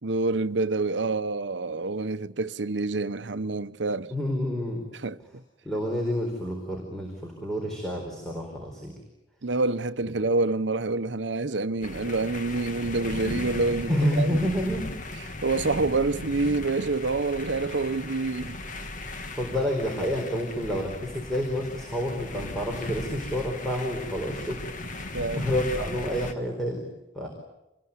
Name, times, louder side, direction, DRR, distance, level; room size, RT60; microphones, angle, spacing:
voice 1, 0.0-4.1 5.0-5.4 9.4-13.9 14.2-14.4 15.4-18.6 25.1-25.4, right 3 dB, 70° right, 0.9 m, -27 dB
voice 2, 4.1-4.8 5.6-9.0 13.9-14.9 19.3-24.7 25.3-26.9 27.1-27.3, equal, 5° left, 4.3 m, -29 dB
sound 1, 11.8-26.3, left 2 dB, 45° left, 1.7 m, -37 dB
27.5 x 21.0 x 9.7 m
head